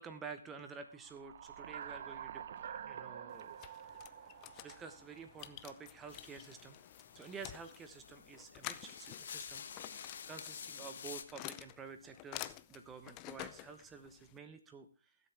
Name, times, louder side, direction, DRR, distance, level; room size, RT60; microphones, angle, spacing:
voice 1, 0.0-3.6 4.6-6.8 7.1-14.9, right 5 dB, 10° right, 8 dB, 1.1 m, -50 dB
sound 1, 0.9-5.6, right 8 dB, 50° right, 0.8 m, -48 dB
sound 2, 3.3-14.4, left 15 dB, 25° left, 0.6 m, -50 dB
sound 3, 6.1-11.2, left 7 dB, 55° left, 1.3 m, -49 dB
20.0 x 8.1 x 3.5 m, 0.33 s
hypercardioid pair, 145°, 0 cm